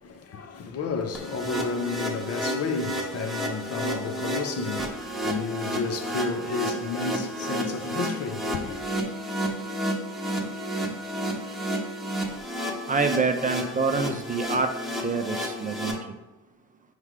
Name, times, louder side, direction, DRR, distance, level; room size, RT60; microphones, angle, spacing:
voice 1, 0.0-8.8, left 4 dB, 55° left, 0.6 m, -31 dB
sound 1, 1.1-15.9, equal, ahead, 0.9 m, -31 dB
voice 2, 12.9-14.7 15.0-16.0, right 4 dB, 25° right, 0.4 m, -26 dB
4.6 x 3.2 x 3.6 m
cardioid pair, 90°, 30 cm